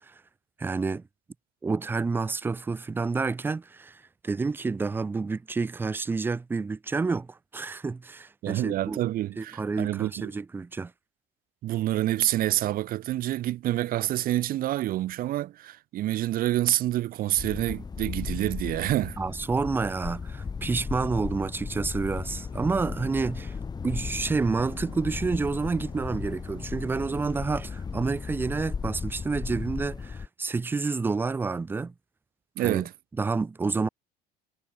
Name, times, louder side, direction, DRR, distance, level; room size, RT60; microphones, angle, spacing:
voice 1, 0.6-1.0 1.6-9.0 9.4-10.9 19.2-23.5 23.8-31.9 32.6-32.9 33.2-33.9, right 4 dB, 10° right, 0.4 m, -29 dB
voice 2, 8.4-10.3 11.6-19.2 32.6-32.9, right 14 dB, 50° right, 0.9 m, -27 dB
sound 1, 17.4-30.3, left 5 dB, 20° left, 3.7 m, -36 dB
cardioid pair, 150°, 19 cm